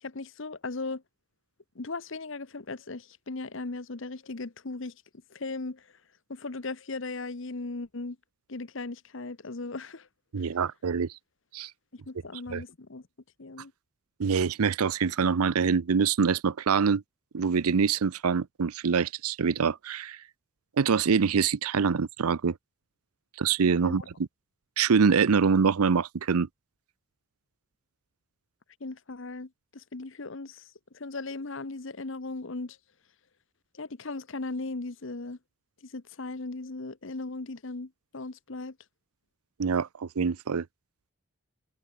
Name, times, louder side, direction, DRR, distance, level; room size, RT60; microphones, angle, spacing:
voice 1, 0.0-1.0 1.7-5.0 5.3-5.9 6.3-8.2 8.5-10.1 10.4-10.5 11.9-13.1 13.4-13.7 23.8-24.1 28.8-32.8 33.7-35.4 35.8-38.8, left 3 dB, 60° left, 1.0 m, -37 dB
voice 2, 10.3-11.1 11.5-11.7 12.5-12.6 14.2-17.0 17.3-20.2 20.8-22.6 23.4-24.0 24.8-26.5 39.6-40.7, right 6 dB, 90° right, 0.6 m, -25 dB
head